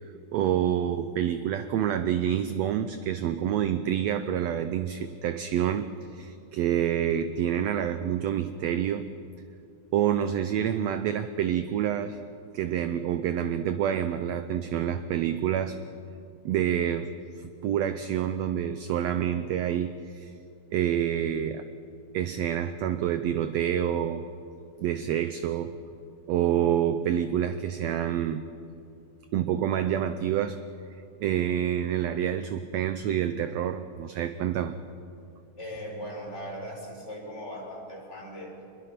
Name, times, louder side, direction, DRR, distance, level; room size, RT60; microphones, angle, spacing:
voice 1, 0.3-9.1 9.9-12.2 12.5-15.8 16.4-17.1 17.4-20.3 20.7-21.6 22.1-24.3 24.8-25.7 26.3-28.4 29.3-30.6 31.2-34.8, right 10 dB, 75° right, 10 dB, 1.6 m, -27 dB
voice 2, 35.6-38.5, equal, 20° left, -2 dB, 4.9 m, -39 dB
26.0 x 22.0 x 5.9 m, 2.6 s
omnidirectional pair, 3.7 m